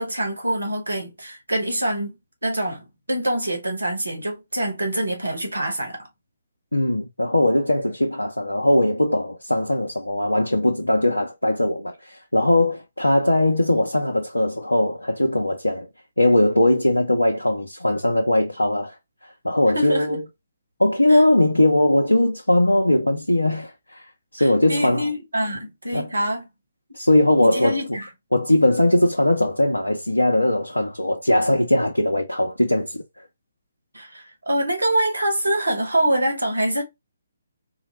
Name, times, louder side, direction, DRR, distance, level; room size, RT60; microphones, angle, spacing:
voice 1, 0.0-2.1 2.4-6.0 19.7-20.2 21.1-21.2 24.4-26.5 27.4-28.1 33.9-36.8, right 1 dB, 80° right, 1.3 m, -25 dB
voice 2, 6.7-15.9 16.2-19.0 19.4-20.2 20.8-24.1 24.3-25.1 25.9-26.1 26.9-28.0 28.3-33.0, left 1 dB, 85° left, 0.5 m, -20 dB
3.8 x 2.1 x 3.0 m
figure-of-eight pair, 135°, 0 cm